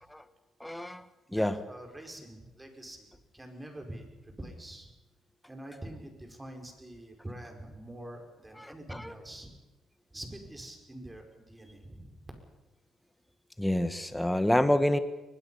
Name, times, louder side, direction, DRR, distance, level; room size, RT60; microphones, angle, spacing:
voice 1, 0.6-1.0 1.3-1.5 8.6-8.7 9.0-9.1 13.6-15.0, left 1 dB, 5° left, 10 dB, 1.5 m, -27 dB
voice 2, 1.3-4.9 5.5-9.5 10.1-12.3, right 1 dB, 15° right, 3 dB, 5.0 m, -45 dB
23.0 x 20.5 x 5.7 m, 1.1 s
cardioid pair, 90°, 0 cm